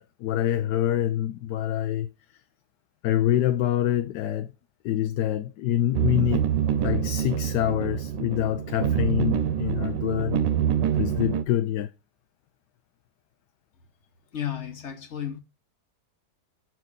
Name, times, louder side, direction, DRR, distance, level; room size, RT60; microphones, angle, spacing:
voice 1, 0.0-2.1 3.0-4.5 4.8-6.5 6.8-10.4 11.0-11.9, left 12 dB, 75° left, 1.1 m, -26 dB
sound 1, 5.9-11.4, right 9 dB, 85° right, 1.3 m, -26 dB
voice 2, 14.3-15.4, left 10 dB, 45° left, 1.3 m, -33 dB
6.9 x 4.9 x 3.8 m
omnidirectional pair, 1.9 m